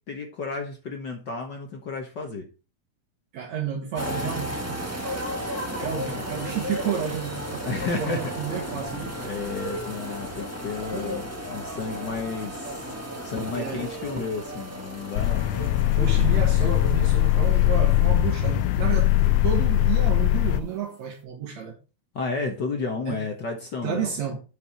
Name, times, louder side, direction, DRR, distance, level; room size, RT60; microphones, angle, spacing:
voice 1, 0.1-2.5 6.0-6.2 7.6-8.3 9.2-12.9 13.2-15.5 22.1-24.1, left 4 dB, 50° left, 1.4 m, -32 dB
voice 2, 3.3-4.8 5.8-9.1 13.5-13.9 16.0-21.7 23.1-23.2 23.8-24.4, right 8 dB, 70° right, 2.5 m, -31 dB
sound 1, 3.9-20.2 20.5-20.8, equal, 10° right, 0.8 m, -35 dB
sound 2, 15.1-20.6, left 15 dB, 85° left, 1.4 m, -21 dB
8.0 x 5.8 x 4.4 m
omnidirectional pair, 3.3 m